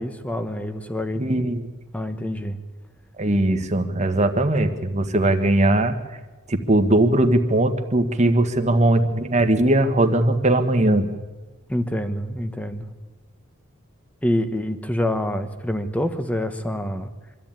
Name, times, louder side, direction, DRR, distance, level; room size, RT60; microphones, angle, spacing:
voice 1, 0.0-1.2 1.9-2.6 11.7-12.9 14.2-17.1, left 1 dB, 5° left, 9 dB, 1.2 m, -26 dB
voice 2, 1.2-1.6 3.2-5.9 6.5-11.1, right 1 dB, 35° right, 7 dB, 1.5 m, -19 dB
24.0 x 13.5 x 9.0 m, 1.3 s
head